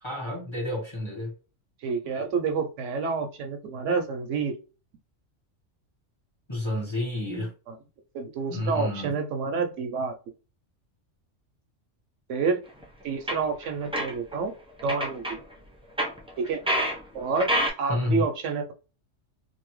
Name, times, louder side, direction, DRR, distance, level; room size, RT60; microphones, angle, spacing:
voice 1, 0.0-1.3 6.5-7.5 8.5-9.2 17.9-18.3, left 1 dB, 25° left, 1.3 m, -30 dB
voice 2, 1.8-4.6 7.7-7.8 8.1-10.1 12.3-12.6 13.0-14.5 14.8-15.4 16.4-16.6 17.1-17.5 17.8-18.7, right 4 dB, 75° right, 0.9 m, -28 dB
sound 1, 12.8-12.9 13.3-14.4 14.8-15.4 16.0-17.0 17.3-17.7, equal, 5° right, 0.5 m, -27 dB
2.6 x 2.6 x 3.1 m
omnidirectional pair, 1.3 m